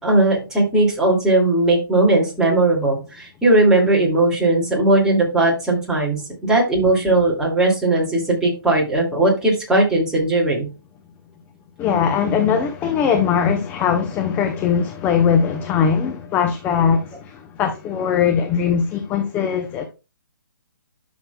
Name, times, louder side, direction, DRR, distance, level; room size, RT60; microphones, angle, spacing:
voice 1, 0.0-10.7, right 2 dB, 5° right, 2.4 m, -18 dB
voice 2, 11.8-19.8, left 7 dB, 15° left, 0.6 m, -20 dB
12.0 x 6.2 x 2.3 m
hypercardioid pair, 150°, 12 cm